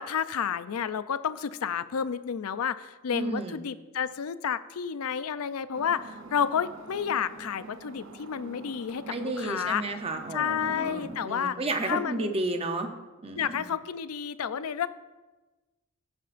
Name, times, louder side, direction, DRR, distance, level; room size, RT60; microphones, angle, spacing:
voice 1, 0.0-9.8 10.3-11.6 11.8-12.3 13.4-14.9, left 7 dB, 85° left, 14 dB, 0.4 m, -30 dB
voice 2, 3.1-3.6 9.1-12.9 13.2-13.6, right 2 dB, 25° right, 5 dB, 0.7 m, -32 dB
sound 1, 5.7-11.2, right 3 dB, 60° right, 0.7 m, -46 dB
16.0 x 8.8 x 2.6 m, 1.2 s
head